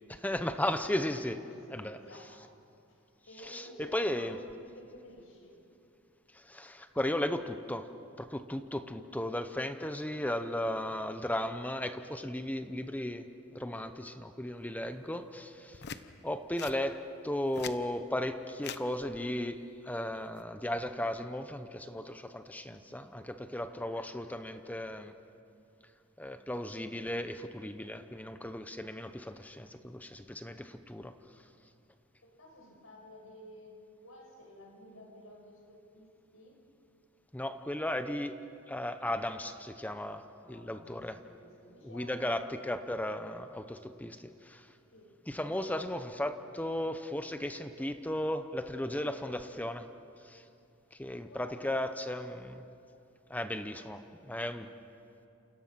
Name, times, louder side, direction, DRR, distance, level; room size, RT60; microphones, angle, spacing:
voice 1, 0.1-1.4 1.7-2.0 3.5-3.6 3.9-4.4 6.3-7.9 8.2-13.2 13.5-15.8 16.2-25.1 26.2-31.1 37.3-38.4 38.7-41.2 41.8-44.7 45.3-49.9 50.2-50.4 50.9-52.6 53.3-54.7, left 1 dB, 10° left, 9 dB, 0.8 m, -36 dB
voice 2, 1.4-2.3 2.9-5.6 22.7-23.0 32.2-36.6 40.4-42.5 44.9-45.1 45.4-46.1 51.3-51.6 52.0-52.2, equal, 75° left, 1 dB, 6.4 m, -53 dB
sound 1, 15.7-16.0 16.6-16.8 17.4-17.8 18.6-18.8 20.1-20.4, left 7 dB, 55° left, 1.0 m, -42 dB
29.5 x 28.0 x 6.0 m, 2.6 s
head